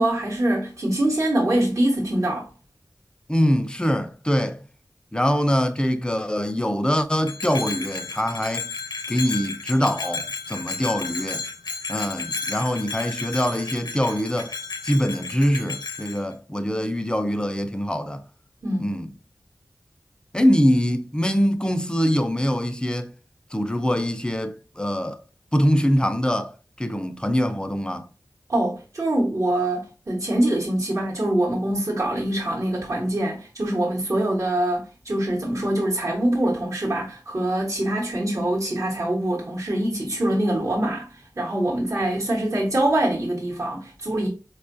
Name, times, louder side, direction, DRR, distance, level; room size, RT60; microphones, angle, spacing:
voice 1, 0.0-2.5 18.6-19.0 28.5-41.1 41.4-44.3, right 1 dB, 50° right, 1.1 m, -24 dB
voice 2, 3.3-4.6 5.1-8.7 9.1-11.4 11.9-14.5 14.8-18.2 18.8-19.1 20.3-23.1 23.5-25.2 25.5-26.5 26.8-28.1, equal, 10° left, 0.4 m, -23 dB
Bell, 7.2-16.2, left 4 dB, 80° left, 0.7 m, -33 dB
4.4 x 2.4 x 2.5 m
wide cardioid pair, 55°, 7 cm